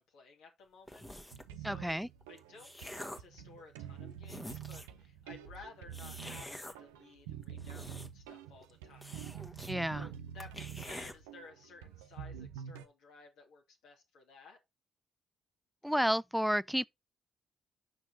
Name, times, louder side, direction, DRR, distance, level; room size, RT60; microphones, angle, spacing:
voice 1, 0.0-1.9 2.3-9.5 9.9-14.6, left 4 dB, 70° left, 2.5 m, -56 dB
sound 1, 0.9-1.5 2.2-3.4 3.9-4.0 4.2-5.0 5.9-6.7 7.4-8.3 8.6-8.7 9.0-9.7 10.1-10.2 10.4-11.1, left 1 dB, 15° left, 1.5 m, -46 dB
sound 2, 1.3-12.9, right 9 dB, 80° right, 0.7 m, -47 dB
voice 2, 1.6-2.1 9.7-10.1 15.8-16.8, equal, ahead, 0.4 m, -31 dB
8.3 x 6.3 x 2.8 m
hypercardioid pair, 45°, 0 cm